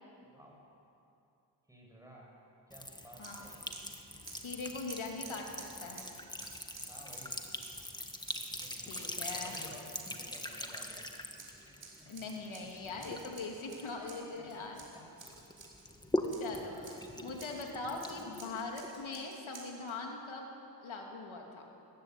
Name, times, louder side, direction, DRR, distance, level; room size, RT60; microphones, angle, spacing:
voice 1, 0.3-0.6 1.7-2.3 2.7-3.6 6.4-7.3 8.5-11.1 11.6-12.1 14.4-15.1 16.2-17.0, equal, 5° right, -2 dB, 6.1 m, -55 dB
Sink (filling or washing) / Trickle dribble, 2.7-14.8 15.2-19.1, left 1 dB, 10° left, 1.5 m, -42 dB
Scissors, 3.2-4.0 4.2-7.9 8.2-9.2 9.5-11.0 11.4-15.8 16.3-17.6 18.0-20.0, right 4 dB, 70° right, 4.8 m, -53 dB
voice 2, 4.4-5.5 5.8-6.0 8.9-9.6 12.1-14.8 16.4-20.5 20.8-21.6, left 3 dB, 85° left, 1 dB, 2.8 m, -41 dB
21.0 x 15.0 x 9.2 m, 2.8 s
wide cardioid pair, 105°, 47 cm